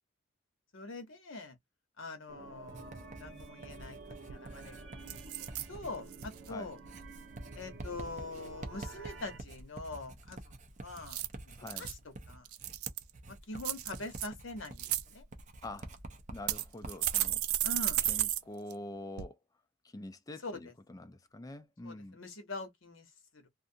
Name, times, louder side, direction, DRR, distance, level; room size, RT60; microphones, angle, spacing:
voice 1, 0.7-1.6 2.0-4.7 5.0-6.8 7.5-10.4 10.8-12.5 13.3-15.2 17.6-18.0 20.4-20.7 21.8-23.5, left 2 dB, 65° left, 0.9 m, -44 dB
sound 1, 2.3-9.4, right 4 dB, 60° right, 0.9 m, -51 dB
Writing, 2.7-17.3, right 2 dB, 35° right, 0.5 m, -48 dB
sound 2, 3.9-4.0 4.3-4.6 5.1-5.7 6.1-6.5 11.0-11.9 12.4-13.1 13.6-14.3 14.6-15.0 15.8-15.9 16.5-18.4 18.7-18.8 19.2-19.3, right 13 dB, 85° right, 0.4 m, -33 dB
voice 2, 11.6-11.9 15.6-15.9 16.3-17.4 18.1-19.4 19.8-22.2, left 1 dB, 15° left, 0.3 m, -45 dB
2.6 x 2.4 x 2.6 m
head